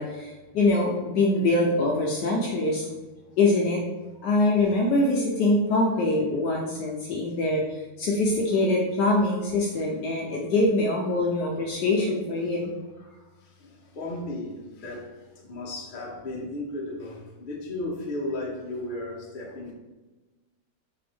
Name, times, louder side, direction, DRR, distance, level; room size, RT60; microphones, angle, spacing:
voice 1, 0.0-2.9 3.4-3.8 4.2-12.6, left 2 dB, 70° left, 1.0 m, -24 dB
voice 2, 13.0-19.7, left 2 dB, 55° left, 0.5 m, -35 dB
3.9 x 3.4 x 3.3 m
omnidirectional pair, 2.3 m